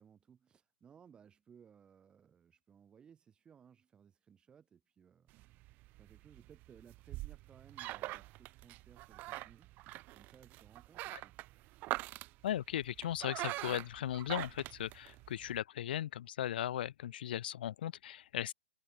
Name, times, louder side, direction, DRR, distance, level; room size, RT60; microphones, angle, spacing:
voice 1, 0.0-5.3 6.0-9.7 10.1-11.4, right 7 dB, 15° right, 7.6 m, -61 dB
sound 1, 5.3-15.6, right 20 dB, 30° right, 3.9 m, -44 dB
voice 2, 12.4-18.5, left 11 dB, 60° left, 2.6 m, -37 dB
hypercardioid pair, 140°, 6 cm